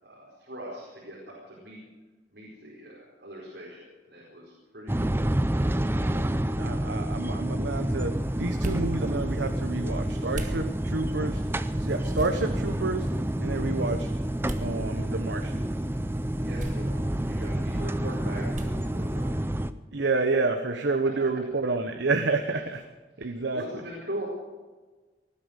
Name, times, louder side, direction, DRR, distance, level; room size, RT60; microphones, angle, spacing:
voice 1, 0.0-1.8 2.3-5.1 6.3-6.4 16.4-19.3 23.5-24.3, right 1 dB, 65° right, -4 dB, 4.7 m, -41 dB
sound 1, 4.9-19.7, right 1 dB, 15° right, 0.5 m, -29 dB
voice 2, 6.0-11.4 11.8-13.1 13.4-14.2 14.5-15.7 19.9-22.9 23.2-23.6, right 3 dB, 90° right, 6 dB, 1.1 m, -29 dB
sound 2, 8.2-19.3, right 1 dB, 45° right, 1.6 m, -41 dB
19.0 x 11.5 x 6.5 m, 1.3 s
head